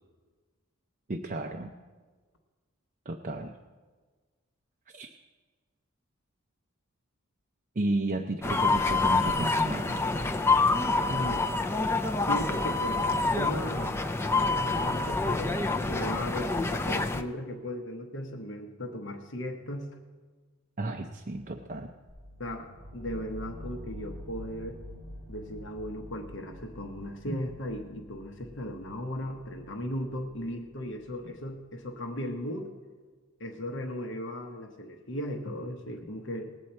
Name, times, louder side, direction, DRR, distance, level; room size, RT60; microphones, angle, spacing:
voice 1, 1.1-1.7 3.1-3.5 4.9-5.1 7.8-10.0 20.8-21.9, right 2 dB, 35° right, 3 dB, 0.5 m, -33 dB
sound 1, 8.4-17.2, left 3 dB, 10° left, 0.4 m, -27 dB
voice 2, 11.1-11.4 12.2-14.0 14.3-19.9 22.4-24.8 25.3-32.7 33.4-36.5, equal, 55° left, 3 dB, 1.0 m, -37 dB
sound 2, 22.1-31.9, equal, 20° right, 4.9 m, -47 dB
19.5 x 8.2 x 4.4 m, 1.4 s
head